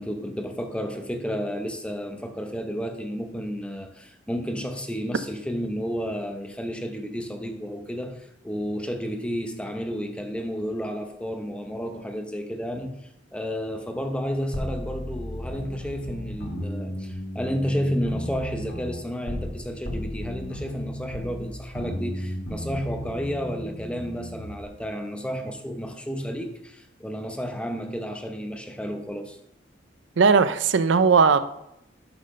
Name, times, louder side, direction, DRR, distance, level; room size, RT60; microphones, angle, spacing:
voice 1, 0.0-13.0 13.3-29.4, equal, 5° left, 0.7 m, -31 dB
sound 1, 14.5-19.6 19.9-24.6, equal, 85° left, 1.7 m, -34 dB
voice 2, 30.2-31.4, right 5 dB, 85° right, 0.5 m, -18 dB
10.0 x 4.0 x 6.4 m
head